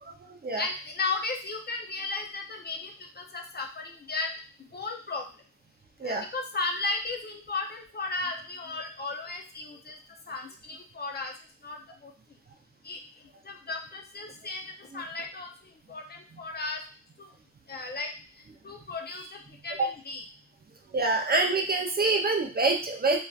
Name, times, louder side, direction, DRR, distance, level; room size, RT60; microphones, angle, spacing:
voice 1, 0.0-0.6 6.0-6.2 19.8-19.9 20.9-23.2, right 3 dB, 30° right, 2 dB, 0.4 m, -26 dB
voice 2, 0.6-4.3 4.7-5.3 6.0-10.0 10.3-11.3 11.6-12.1 12.8-13.0 13.4-16.8 17.2-17.3 17.7-20.2, left 3 dB, 30° left, 3 dB, 0.5 m, -35 dB
2.5 x 2.2 x 2.3 m, 0.36 s
cardioid pair, 60°, 33 cm